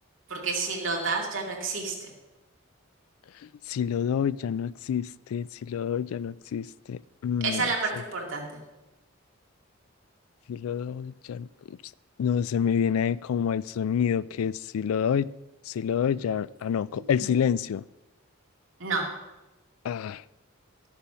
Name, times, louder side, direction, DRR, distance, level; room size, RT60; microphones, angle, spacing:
voice 1, 0.3-2.1 7.4-8.5 17.2-17.3 18.8-19.0, right 4 dB, 65° right, 2.3 m, -29 dB
voice 2, 3.4-7.7 10.5-11.8 12.2-15.3 15.7-17.8 19.8-20.2, left 7 dB, 85° left, 0.3 m, -28 dB
13.0 x 7.0 x 5.6 m
head